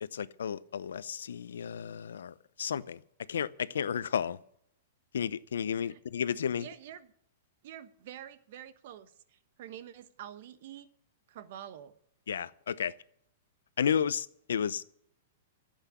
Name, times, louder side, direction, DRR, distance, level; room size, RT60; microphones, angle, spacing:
voice 1, 0.0-3.0 3.3-4.4 5.1-6.7 12.3-12.9 13.8-14.8, left 8 dB, 90° left, 0.8 m, -32 dB
voice 2, 6.6-7.1 7.6-10.9 11.3-11.9, right 10 dB, 60° right, 1.2 m, -47 dB
12.0 x 8.0 x 9.7 m
hypercardioid pair, 145°, 0 cm